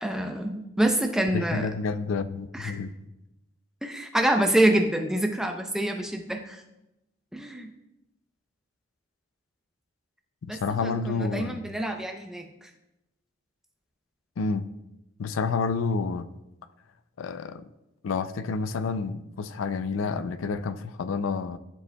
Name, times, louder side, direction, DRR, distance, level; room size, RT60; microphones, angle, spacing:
voice 1, 0.0-1.7 2.5-2.7 3.8-6.6 7.3-7.7 10.5-12.7, right 1 dB, 5° right, 0.5 m, -26 dB
voice 2, 1.3-2.9 10.4-11.7 14.4-14.7 15.2-16.3 17.2-17.7 18.0-21.6, left 4 dB, 70° left, 0.4 m, -29 dB
12.5 x 5.3 x 2.2 m
head